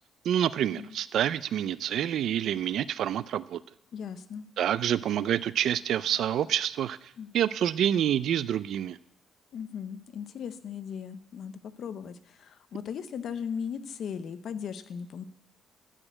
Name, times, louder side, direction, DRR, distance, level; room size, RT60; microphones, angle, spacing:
voice 1, 0.2-3.6 4.6-7.0 7.3-9.0, right 10 dB, 60° right, 17 dB, 0.3 m, -27 dB
voice 2, 3.9-4.5 7.2-7.3 9.5-11.5 11.8-15.2, left 7 dB, 55° left, 12 dB, 0.6 m, -37 dB
12.5 x 5.1 x 8.7 m, 0.79 s
cardioid pair, 170°, 0 cm